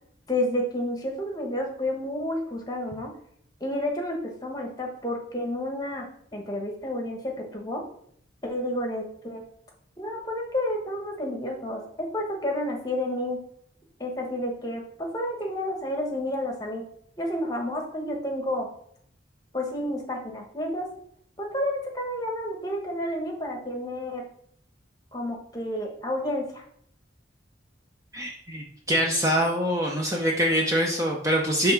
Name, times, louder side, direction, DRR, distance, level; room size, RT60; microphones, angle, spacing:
voice 1, 0.3-3.1 3.6-6.0 6.3-7.8 8.4-9.4 10.0-13.4 14.0-16.8 17.2-18.7 19.5-20.9 21.4-24.3 25.1-26.6, left 1 dB, 20° left, 1 dB, 1.1 m, -30 dB
voice 2, 28.1-31.7, equal, 15° right, 0 dB, 0.6 m, -24 dB
5.4 x 3.5 x 5.7 m, 0.66 s
head